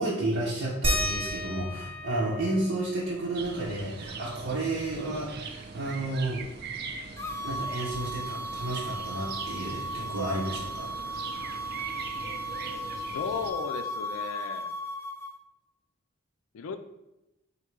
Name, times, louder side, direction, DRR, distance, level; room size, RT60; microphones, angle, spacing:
voice 1, 0.0-6.5 7.4-10.9, right 2 dB, 85° right, -7 dB, 0.9 m, -31 dB
sound 1, 0.8-6.0 6.3-6.4 6.7-8.5 9.8-9.9 10.6-10.7, equal, 30° right, 0.8 m, -36 dB
sound 2, 3.3-13.5, right 4 dB, 50° right, 0.5 m, -41 dB
sound 3, 7.2-15.3, equal, 15° left, 0.3 m, -36 dB
voice 2, 12.9-14.7 16.5-16.8, left 5 dB, 85° left, 9 dB, 0.4 m, -35 dB
3.6 x 2.7 x 4.5 m, 0.95 s
head